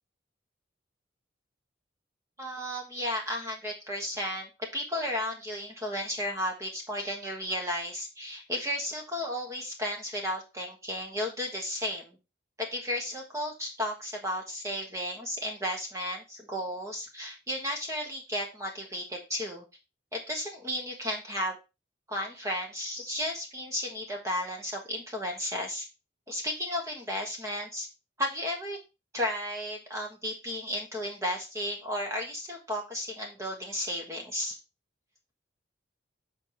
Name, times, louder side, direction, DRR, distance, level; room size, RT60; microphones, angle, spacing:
voice 1, 2.4-12.2 12.6-19.6 20.1-21.5 22.1-25.9 26.3-27.9 28.2-28.8 29.1-34.6, left 1 dB, 15° right, 1 dB, 1.4 m, -34 dB
6.9 x 4.4 x 4.5 m, 0.27 s
head